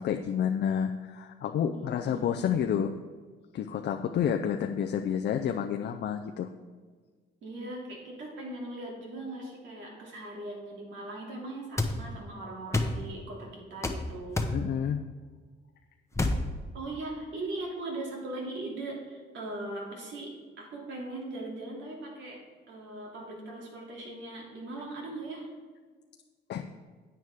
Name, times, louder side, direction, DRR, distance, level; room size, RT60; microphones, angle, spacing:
voice 1, 0.0-2.9 3.5-6.5 14.5-15.0 26.5-26.6, left 8 dB, 60° left, 5 dB, 0.5 m, -29 dB
voice 2, 1.7-2.4 7.4-14.5 16.7-22.4 22.7-25.5, right 2 dB, 70° right, -2 dB, 2.7 m, -39 dB
sound 1, 11.8-11.9 12.7-13.0 13.8-14.0 14.4-14.6 16.1-16.4, left 2 dB, 15° left, 1.0 m, -27 dB
9.4 x 8.9 x 3.6 m, 1.5 s
cardioid pair, 90°, 20 cm